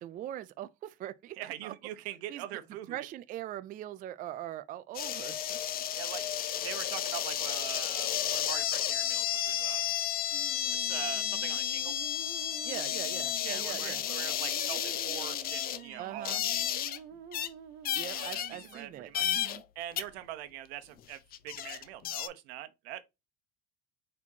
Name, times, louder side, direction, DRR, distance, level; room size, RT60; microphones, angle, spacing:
voice 1, 0.0-1.4 1.6-1.7 2.3-2.4 2.9-5.6 12.6-14.0 16.0-16.4 17.9-19.6, right 12 dB, 25° right, 0.4 m, -41 dB
voice 2, 1.4-3.0 6.0-6.2 6.5-9.9 10.7-12.0 13.4-16.6 17.8-18.4 18.7-19.4 19.7-23.0, right 13 dB, 80° right, 1.0 m, -43 dB
sound 1, 4.9-17.0 17.3-17.5 17.8-18.8 19.1-19.6 20.0-20.1 21.0-21.1 21.3-22.3, left 11 dB, 30° left, 0.5 m, -32 dB
sound 2, 10.3-19.2, right 8 dB, 65° right, 1.5 m, -49 dB
4.3 x 4.3 x 2.8 m
supercardioid pair, 135°, 31 cm